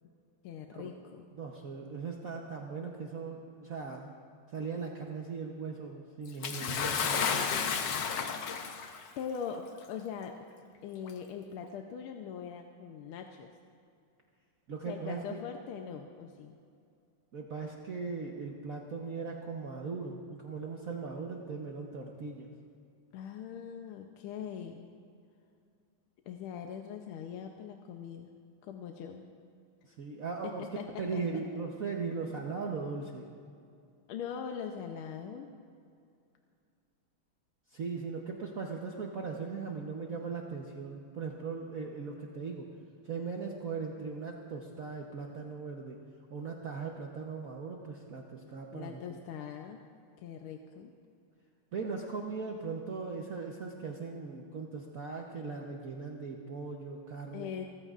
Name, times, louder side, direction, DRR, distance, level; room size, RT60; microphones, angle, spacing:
voice 1, 0.4-1.3 9.2-10.4 10.8-13.5 14.9-16.6 23.1-24.9 26.3-28.3 28.6-29.3 30.4-31.2 32.3-32.4 34.1-35.5 48.7-49.8 50.2-50.9 57.3-57.7, left 7 dB, 85° left, 4 dB, 1.6 m, -41 dB
voice 2, 1.3-4.1 4.5-7.6 14.7-15.4 17.3-22.5 29.8-30.7 31.0-33.3 37.7-42.7 43.0-46.0 46.3-49.0 51.7-57.5, right 4 dB, 50° right, 0 dB, 1.1 m, -39 dB
Bathtub (filling or washing) / Splash splatter, 6.4-9.0 10.0-10.1 11.0-11.1, left 6 dB, 60° left, 1.4 m, -32 dB
28.5 x 14.5 x 2.5 m, 2.4 s
omnidirectional pair, 2.3 m